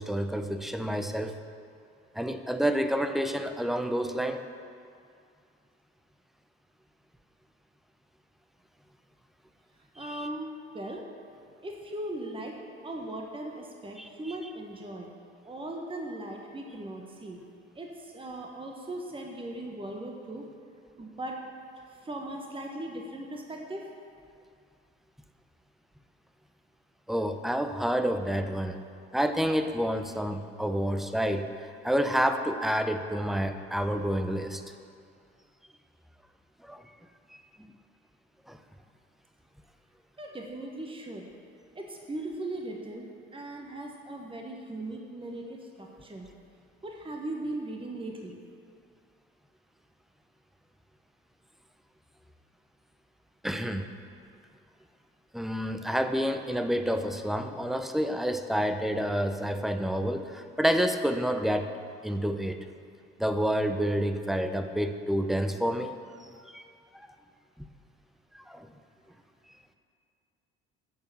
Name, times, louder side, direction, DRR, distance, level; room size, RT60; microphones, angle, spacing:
voice 1, 0.0-1.3 2.1-4.4 10.0-10.3 14.0-14.1 27.1-28.8 29.1-34.6 36.6-36.8 37.6-37.7 38.5-38.6 53.4-53.9 55.3-61.7 62.0-62.6 63.2-65.9 66.5-66.6 66.9-67.1 67.6-67.7 68.3-68.7, equal, ahead, 8 dB, 0.8 m, -29 dB
voice 2, 9.9-11.0 11.6-12.6 12.8-15.1 15.4-17.4 17.7-20.5 21.0-21.3 22.0-23.9 40.2-41.2 41.7-46.3 46.8-48.4, right 1 dB, 15° right, 1 dB, 1.5 m, -38 dB
10.5 x 7.0 x 6.9 m, 2.3 s
hypercardioid pair, 55°, 32 cm